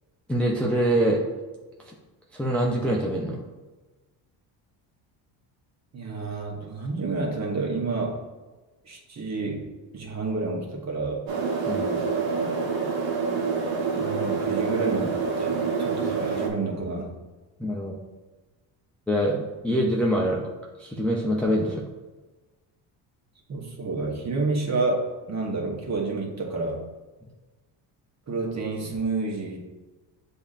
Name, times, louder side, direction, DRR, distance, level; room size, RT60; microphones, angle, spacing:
voice 1, 0.3-1.2 1.9-2.0 2.3-3.4 11.7-12.0 17.6-18.0 19.1-20.4 20.8-21.8, equal, 5° left, -3 dB, 0.4 m, -24 dB
voice 2, 5.9-8.2 8.8-11.3 13.9-17.1 23.5-26.8 28.3-29.6, right 3 dB, 35° right, -1 dB, 1.1 m, -29 dB
sound 1, 11.3-16.5, right 5 dB, 65° right, 1.0 m, -27 dB
6.9 x 2.7 x 2.4 m, 1.2 s
cardioid pair, 100°, 48 cm